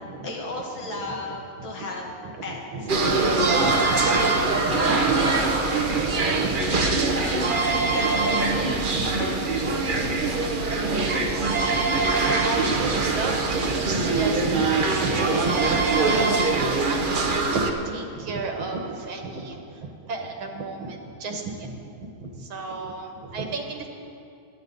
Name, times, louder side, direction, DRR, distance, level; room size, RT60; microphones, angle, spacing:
voice 1, 0.0-3.3 3.7-5.9 6.8-8.9 9.2-9.4 11.3-11.7, left 2 dB, 70° left, -1 dB, 2.7 m, -36 dB
voice 2, 2.2-3.2 3.6-5.5 5.8-6.9 7.5-8.3 8.6-9.2 9.9-21.9 22.2-23.9, right 3 dB, 75° right, 3 dB, 2.2 m, -33 dB
sound 1, 2.9-17.7, right 3 dB, 55° right, 0.5 m, -23 dB
23.0 x 10.5 x 4.0 m, 2.6 s
omnidirectional pair, 2.3 m